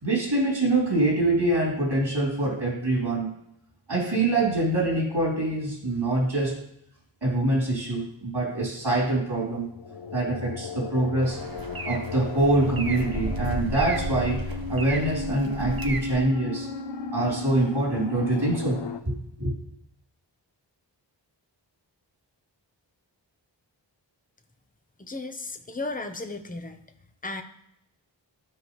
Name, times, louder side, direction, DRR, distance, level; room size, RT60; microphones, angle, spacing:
voice 1, 0.0-3.3 3.9-6.6 7.2-9.7 10.1-11.4 11.8-14.4 14.7-16.7 17.1-18.8 19.1-19.2 19.4-19.5, right 2 dB, 70° right, -4 dB, 3.5 m, -25 dB
sound 1, 9.6-19.0, left 5 dB, 65° left, 0.8 m, -35 dB
sound 2, 11.2-16.2, right 3 dB, 50° right, 0.9 m, -34 dB
voice 2, 25.0-26.8 27.2-27.4, left 2 dB, 20° left, 6 dB, 0.9 m, -34 dB
13.0 x 5.0 x 3.2 m, 0.78 s
wide cardioid pair, 45°, 45 cm